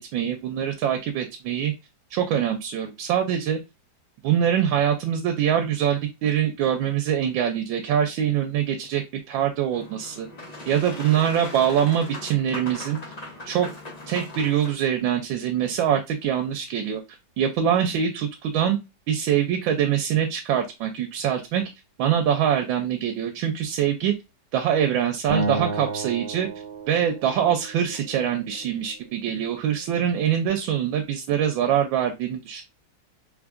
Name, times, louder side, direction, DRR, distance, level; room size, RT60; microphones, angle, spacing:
voice 1, 0.0-1.7 2.1-3.6 4.2-10.3 10.7-13.0 13.5-13.7 14.1-17.0 17.4-18.8 19.1-21.6 22.0-24.1 24.5-26.5 26.9-32.6, right 9 dB, 90° right, 5 dB, 1.3 m, -24 dB
Boat Water vehicle, 9.7-14.7, left 2 dB, 40° left, 0.5 m, -39 dB
Acoustic guitar, 25.3-28.5, right 3 dB, 30° right, 0.8 m, -31 dB
3.5 x 3.4 x 2.4 m, 0.25 s
omnidirectional pair, 2.0 m